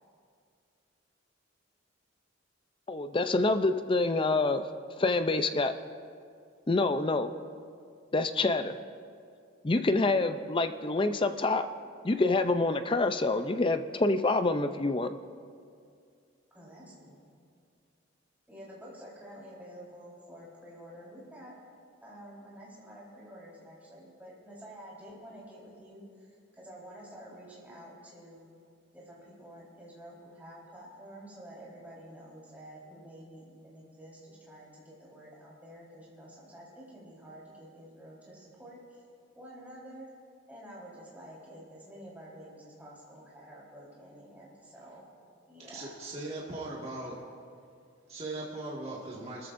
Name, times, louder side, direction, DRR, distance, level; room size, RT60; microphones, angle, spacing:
voice 1, 2.9-4.7 5.0-5.7 6.7-7.3 8.1-8.8 9.6-11.7 12.0-15.1, left 2 dB, 25° left, 9 dB, 0.5 m, -27 dB
voice 2, 16.5-17.2 18.5-21.5 22.0-28.5 28.9-39.0 39.3-40.1 40.5-45.1 45.5-46.0, equal, 10° right, -7 dB, 4.3 m, -49 dB
voice 3, 45.6-47.3 48.1-49.5, right 2 dB, 30° right, -5 dB, 1.9 m, -39 dB
28.0 x 14.0 x 2.6 m, 2.3 s
head